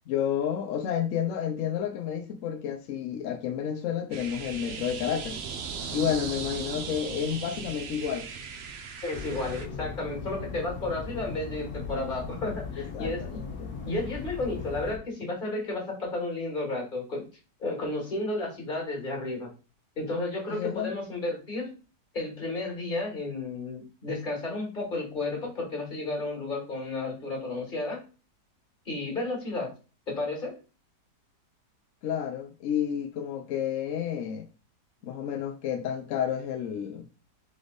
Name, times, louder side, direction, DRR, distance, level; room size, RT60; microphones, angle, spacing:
voice 1, 0.1-5.4 5.9-8.3 12.8-13.3 13.6-13.7 20.5-20.9 32.0-34.5 35.0-37.1, left 9 dB, 80° left, 0.7 m, -30 dB
sound 1, 4.1-9.7, right 6 dB, 80° right, 0.5 m, -38 dB
voice 2, 9.0-13.4 13.9-17.3 17.6-19.5 20.0-21.7 22.1-28.0 28.9-29.7 30.1-30.6, left 2 dB, 30° left, 1.8 m, -32 dB
sound 2, 9.1-15.0, left 5 dB, 60° left, 1.3 m, -38 dB
4.0 x 3.4 x 3.8 m
omnidirectional pair, 1.9 m